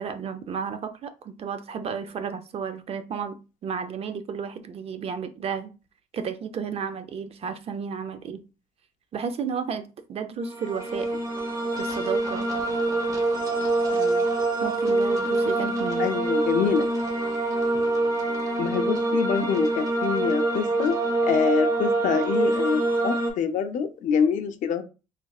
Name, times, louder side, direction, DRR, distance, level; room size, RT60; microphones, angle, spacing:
voice 1, 0.0-3.4 3.6-5.7 6.1-8.4 9.1-11.1 11.7-12.5 13.9-14.3 14.6-16.1, right 6 dB, 50° right, 0.5 m, -32 dB
sound 1, 10.4-23.3, right 2 dB, 25° right, 1.1 m, -25 dB
voice 2, 16.0-16.8 18.6-20.9 21.2-24.8, left 7 dB, 75° left, 0.6 m, -25 dB
3.6 x 3.3 x 2.3 m
cardioid pair, 115°, 13 cm